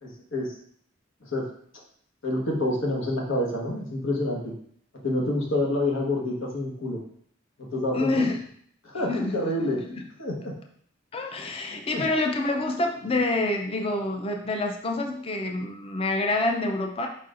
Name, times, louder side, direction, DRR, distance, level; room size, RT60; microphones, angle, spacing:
voice 1, 0.0-0.5 1.2-1.4 2.2-4.5 5.0-7.0 7.7-8.2 8.8-9.8 10.2-10.5 11.9-12.0, left 1 dB, 80° left, -2 dB, 1.3 m, -27 dB
voice 2, 7.9-8.4 9.1-10.0 11.1-17.1, left 2 dB, 30° left, 3 dB, 0.4 m, -27 dB
4.7 x 4.2 x 2.5 m, 0.62 s
head